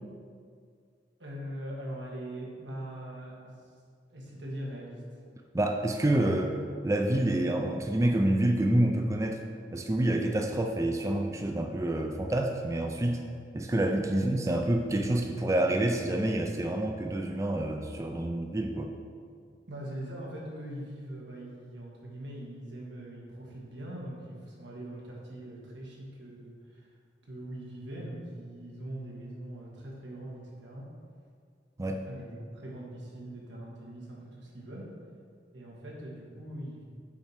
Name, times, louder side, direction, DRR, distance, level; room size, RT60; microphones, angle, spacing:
voice 1, 1.2-3.7 4.1-5.2 14.1-14.3 19.7-26.9 27.2-30.9 32.0-35.0 35.5-36.8, right 1 dB, 90° right, -3 dB, 1.8 m, -42 dB
voice 2, 5.5-6.6 6.8-9.4 9.7-13.2 13.5-18.9 31.8-32.1, right 1 dB, 15° right, 3 dB, 0.4 m, -28 dB
7.2 x 4.5 x 5.8 m, 2.1 s
head